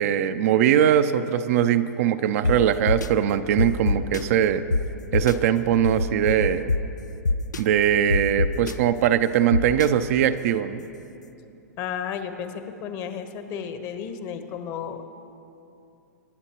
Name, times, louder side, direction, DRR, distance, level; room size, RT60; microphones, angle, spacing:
voice 1, 0.0-4.6 5.1-6.7 7.6-10.9, right 10 dB, 55° right, 10 dB, 0.6 m, -21 dB
sound 1, 2.4-2.5 2.9-3.1 3.6-4.2 4.7-4.8 5.1-5.3 5.8-6.8 7.3-7.6 8.1-8.7 9.5-9.9, left 3 dB, 85° left, 0.5 m, -22 dB
voice 2, 11.8-15.1, left 7 dB, 40° left, 8 dB, 1.1 m, -33 dB
23.0 x 11.0 x 3.0 m, 2.7 s
hypercardioid pair, 110°, 9 cm